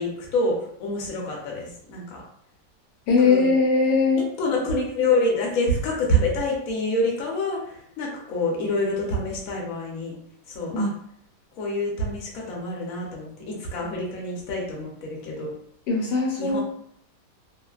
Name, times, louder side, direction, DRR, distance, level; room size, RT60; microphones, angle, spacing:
voice 1, 0.0-2.2 3.2-3.5 4.4-10.1 10.5-10.9 11.6-15.5 16.4-16.6, left 1 dB, 60° left, -2 dB, 1.1 m, -27 dB
voice 2, 3.1-4.2 10.7-10.9 15.9-16.6, left 4 dB, 80° left, -1 dB, 1.3 m, -20 dB
3.1 x 2.1 x 2.3 m, 0.67 s
omnidirectional pair, 1.9 m